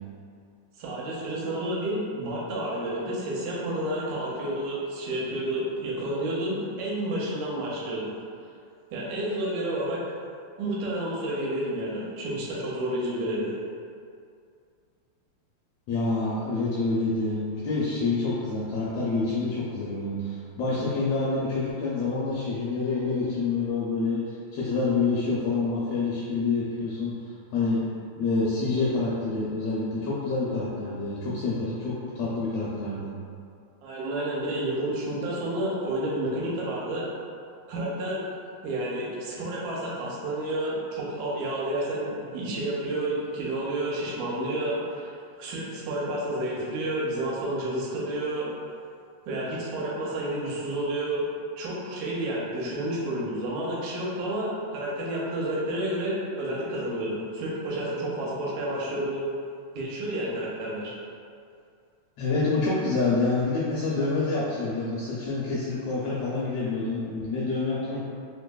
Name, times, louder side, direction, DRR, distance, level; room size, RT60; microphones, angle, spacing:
voice 1, 0.8-8.1 8.9-10.0 10.6-13.6 33.8-37.1 37.7-38.2 38.6-48.5 49.3-51.2 51.6-59.3 59.7-60.9, right 1 dB, 80° right, -5 dB, 2.1 m, -30 dB
voice 2, 15.9-27.1 27.5-27.8 28.2-33.1 62.2-68.0, left 3 dB, 85° left, -7 dB, 1.4 m, -27 dB
4.5 x 2.6 x 2.2 m, 2.3 s
omnidirectional pair, 3.3 m